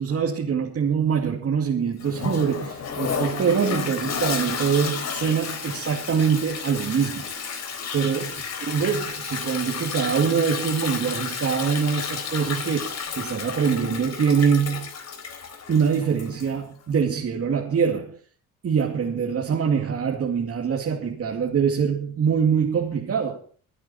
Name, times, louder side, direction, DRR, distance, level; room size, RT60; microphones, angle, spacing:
voice 1, 0.0-7.3 7.9-8.4 8.7-14.9 15.7-18.2 18.6-23.4, right 6 dB, 50° right, 2.5 m, -24 dB
Toilet flush, 2.0-16.6, left 6 dB, 60° left, 3.9 m, -32 dB
24.5 x 9.1 x 4.3 m
cardioid pair, 90°, 30 cm